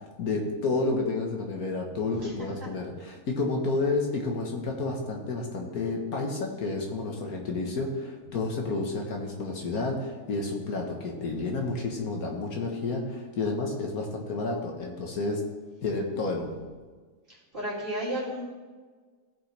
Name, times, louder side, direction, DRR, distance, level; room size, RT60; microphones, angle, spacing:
voice 1, 0.2-15.4 15.8-16.6, left 3 dB, 65° left, 1 dB, 1.6 m, -30 dB
voice 2, 2.1-2.5 17.3-18.4, equal, 35° right, -7 dB, 2.9 m, -33 dB
15.5 x 5.5 x 3.3 m, 1.4 s
omnidirectional pair, 1.7 m